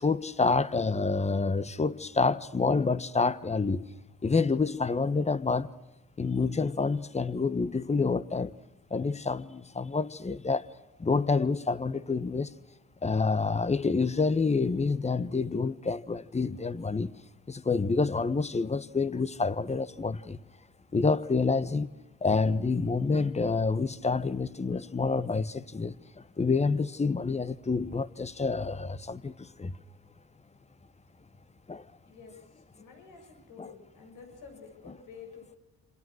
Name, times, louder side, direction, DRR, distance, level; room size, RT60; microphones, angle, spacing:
voice 1, 0.0-3.8 4.2-5.7 6.2-8.5 8.9-10.7 11.0-12.5 13.0-17.1 17.5-20.4 20.9-21.9 22.2-29.8 31.7-31.8 33.6-33.7, left 4 dB, 20° left, 1.2 m, -28 dB
voice 2, 32.0-32.3 32.8-35.6, left 5 dB, 90° left, 7.9 m, -49 dB
27.5 x 27.0 x 6.4 m
cardioid pair, 90°, 30 cm